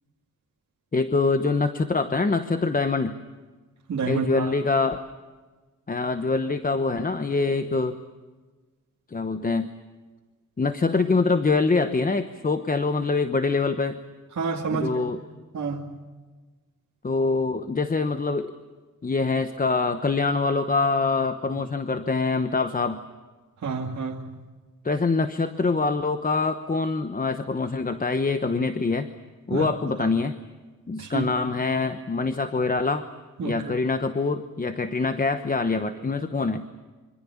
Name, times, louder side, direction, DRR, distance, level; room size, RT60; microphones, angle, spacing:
voice 1, 0.9-3.2 4.1-5.1 5.9-8.0 9.1-9.7 10.6-14.0 14.7-15.2 17.0-18.5 19.0-23.0 24.8-29.1 29.5-30.3 30.9-33.1 33.4-36.6, left 3 dB, 25° left, 9 dB, 1.0 m, -24 dB
voice 2, 3.9-4.5 14.3-14.9 15.5-16.0 23.6-24.4 29.5-29.7 30.0-30.1 31.0-31.3 33.4-33.7, right 5 dB, 60° right, -2 dB, 2.5 m, -29 dB
26.0 x 25.5 x 7.3 m, 1.3 s
wide cardioid pair, 160°, 31 cm